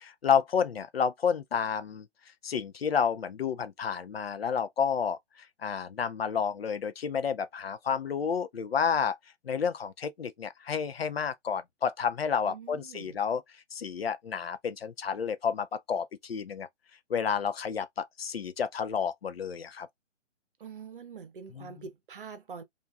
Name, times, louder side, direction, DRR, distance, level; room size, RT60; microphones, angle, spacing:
voice 1, 0.0-2.1 2.4-9.2 9.4-13.4 13.7-16.7 17.1-19.9 21.6-21.7, left 7 dB, 55° left, 0.5 m, -30 dB
voice 2, 12.4-13.2 20.6-22.6, right 6 dB, 45° right, 0.9 m, -45 dB
4.4 x 2.5 x 2.3 m
figure-of-eight pair, 135°, 35 cm